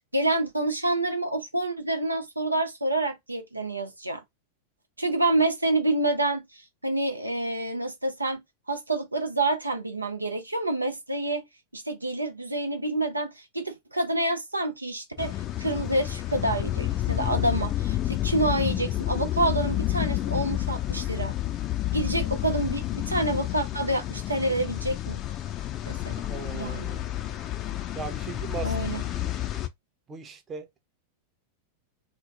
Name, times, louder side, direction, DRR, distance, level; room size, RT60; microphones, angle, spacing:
voice 1, 0.1-4.2 5.0-8.4 8.7-11.5 11.7-21.3 21.9-25.2 25.9-26.1 26.5-26.9 28.6-29.0, right 2 dB, 85° right, 0.5 m, -28 dB
sound 1, 15.2-29.7, left 14 dB, 35° left, 0.4 m, -30 dB
voice 2, 26.3-27.3 27.9-28.7 29.1-29.3 30.1-30.8, right 6 dB, 25° right, 0.8 m, -38 dB
3.1 x 2.0 x 2.6 m
figure-of-eight pair, 90°, 0 cm